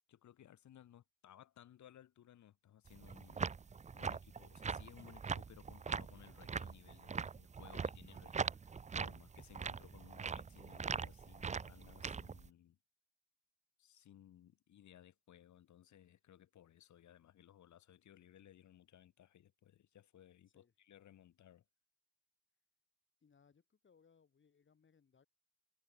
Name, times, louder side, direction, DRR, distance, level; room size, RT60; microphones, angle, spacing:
voice 1, 0.1-3.5 3.9-12.8 13.8-21.6, left 11 dB, 70° left, 5.2 m, -61 dB
sound 1, 2.9-12.5, right 5 dB, 25° right, 0.6 m, -42 dB
voice 2, 23.2-25.3, left 6 dB, 40° left, 6.4 m, -70 dB
cardioid pair, 90°, 30 cm